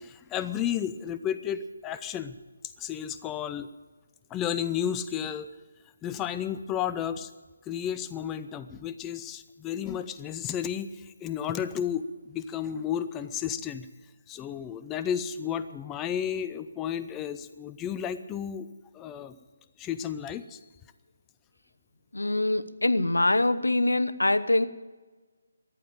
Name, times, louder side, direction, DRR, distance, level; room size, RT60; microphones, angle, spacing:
voice 1, 0.0-2.4 2.8-3.7 4.3-5.5 6.0-7.3 7.7-13.9 14.3-18.7 18.9-19.4 19.8-20.6, left 9 dB, 15° left, 0.5 m, -32 dB
voice 2, 22.1-24.7, left 2 dB, 90° left, 0.8 m, -24 dB
14.5 x 10.0 x 8.8 m
figure-of-eight pair, 155°, 0 cm